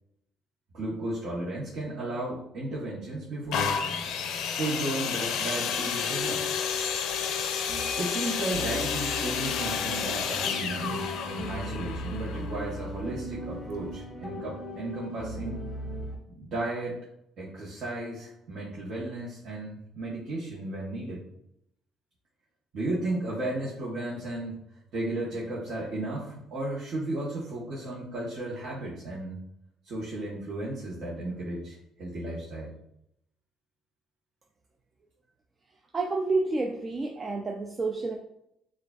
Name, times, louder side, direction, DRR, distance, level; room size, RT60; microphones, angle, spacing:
voice 1, 0.7-3.7 4.5-6.7 7.7-15.6 16.4-17.0 17.4-21.2 22.7-24.6 24.9-29.4 29.8-32.8, right 2 dB, 55° right, -6 dB, 1.1 m, -34 dB
sound 1, 3.5-13.2 13.9-14.0, left 7 dB, 75° left, 0.5 m, -31 dB
sound 2, 8.5-16.2, equal, 10° left, 1.0 m, -38 dB
voice 2, 35.9-38.2, right 3 dB, 25° right, 2 dB, 0.4 m, -29 dB
6.4 x 2.4 x 2.3 m, 0.78 s
cardioid pair, 125°, 0 cm